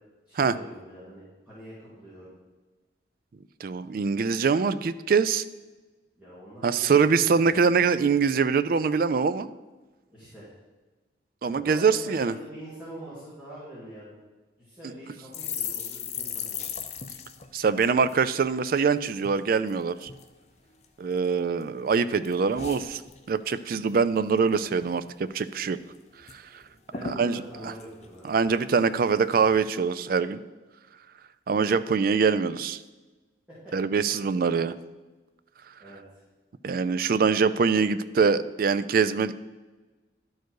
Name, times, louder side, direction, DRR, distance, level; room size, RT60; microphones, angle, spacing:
voice 1, 0.3-2.3 6.2-7.6 10.1-10.5 11.4-14.1 14.6-16.6 26.9-28.3 33.5-33.7 35.8-36.2, right 1 dB, 5° right, -11 dB, 2.6 m, -44 dB
voice 2, 3.6-5.4 6.6-9.5 11.4-12.3 17.5-20.1 21.0-23.0 23.3-25.8 26.3-26.6 27.0-27.7 28.2-30.4 31.5-32.8 33.7-34.8 36.6-39.3, right 5 dB, 50° right, 13 dB, 0.3 m, -24 dB
sound 1, 15.3-18.9 19.2-19.4 19.7-20.3 20.8-21.6 21.9-23.6 23.9-24.1 24.4-25.0 25.3-25.4 25.7-26.4 26.6-26.7 26.9-28.8 29.3-29.6, left 7 dB, 35° left, 0.6 m, -38 dB
11.5 x 4.6 x 4.7 m, 1.2 s
head